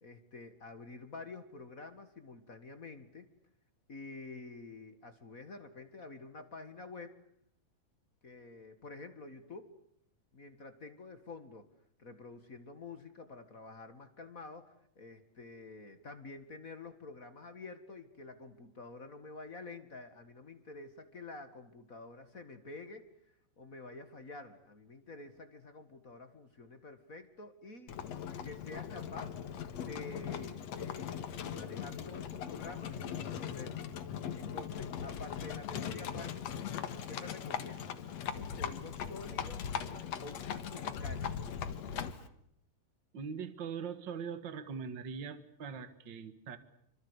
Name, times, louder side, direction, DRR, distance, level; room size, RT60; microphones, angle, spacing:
voice 1, 0.0-3.3 3.9-7.1 8.2-9.7 10.3-11.7 12.0-23.1 23.6-28.2 28.4-29.4 29.8-33.9 34.3-36.4 37.1-39.6 40.2-41.5, left 3 dB, 35° left, 9 dB, 1.7 m, -49 dB
Livestock farm animals working animals, 27.9-42.3, left 8 dB, 60° left, 2.5 m, -40 dB
voice 2, 43.1-46.6, right 6 dB, 40° right, 11 dB, 2.1 m, -41 dB
27.0 x 25.5 x 8.2 m, 0.72 s
omnidirectional pair, 3.7 m